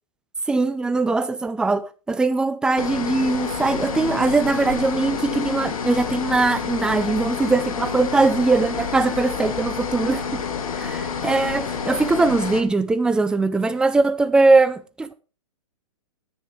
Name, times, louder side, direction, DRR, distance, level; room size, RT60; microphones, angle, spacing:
voice 1, 0.5-10.4 10.8-15.1, right 3 dB, 5° right, 0.5 m, -21 dB
sound 1, 2.8-12.6, left 6 dB, 85° left, 2.1 m, -29 dB
10.0 x 8.3 x 4.8 m
hypercardioid pair, 150°, 17 cm